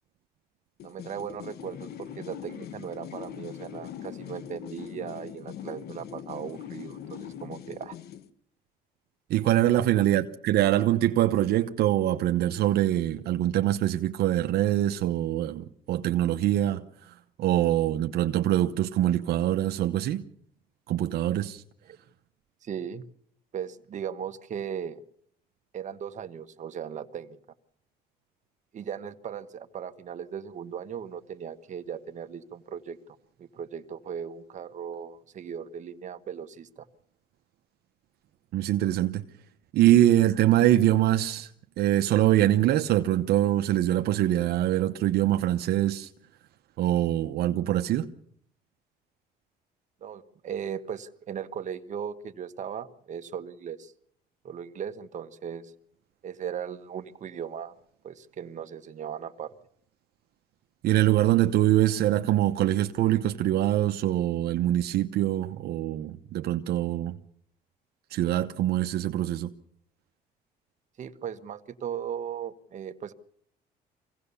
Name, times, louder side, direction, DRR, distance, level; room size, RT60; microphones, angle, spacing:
sound 1, 0.8-8.3, left 9 dB, 70° left, 1.3 m, -41 dB
voice 1, 0.8-7.9 9.8-10.0 21.9-22.0 22.6-23.0 23.5-25.0 25.7-27.4 28.7-33.0 33.4-36.9 50.0-53.9 54.4-55.7 56.2-57.7 58.0-59.5 71.0-73.1, right 8 dB, 45° right, 1.4 m, -37 dB
voice 2, 9.3-20.2 20.9-21.6 38.5-39.2 39.7-41.5 41.8-46.1 46.8-48.1 60.8-67.2 68.1-69.5, right 13 dB, 70° right, 0.9 m, -24 dB
24.5 x 17.0 x 7.0 m
cardioid pair, 110°, 17 cm